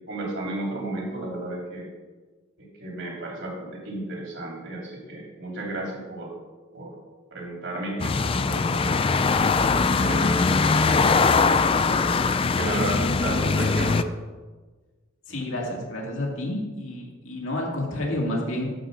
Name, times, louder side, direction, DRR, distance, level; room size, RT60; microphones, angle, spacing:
voice 1, 0.1-1.9 2.6-6.3 6.7-7.0 7.3-9.5 10.0-10.4 10.8-11.9 12.6-14.1, right 2 dB, 55° right, -2 dB, 3.4 m, -33 dB
sound 1, 8.0-14.0, left 4 dB, 25° left, 0.3 m, -21 dB
voice 2, 15.3-18.7, left 1 dB, 60° left, -1 dB, 2.4 m, -29 dB
11.5 x 5.0 x 7.0 m, 1.3 s
head